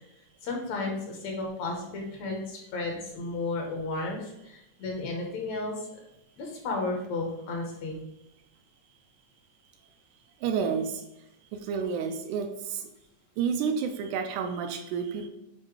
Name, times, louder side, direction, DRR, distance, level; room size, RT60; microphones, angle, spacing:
voice 1, 0.4-5.7 6.4-8.0, left 3 dB, 65° left, 0 dB, 2.2 m, -33 dB
voice 2, 10.4-11.0 11.5-12.8 13.4-15.3, right 6 dB, 80° right, 6 dB, 2.1 m, -30 dB
7.7 x 2.7 x 4.7 m, 0.87 s
omnidirectional pair, 3.7 m